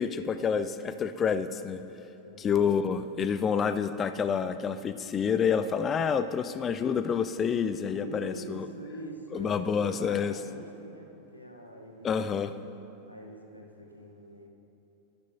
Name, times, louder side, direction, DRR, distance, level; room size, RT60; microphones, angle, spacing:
voice 1, 0.0-1.8 2.4-8.7 9.3-10.3 12.0-12.5, left 6 dB, 25° left, 11 dB, 0.4 m, -28 dB
voice 2, 7.9-12.4 13.1-14.5, equal, 90° left, 2 dB, 1.0 m, -44 dB
13.0 x 11.5 x 2.8 m, 2.8 s
figure-of-eight pair, 90°, 0 cm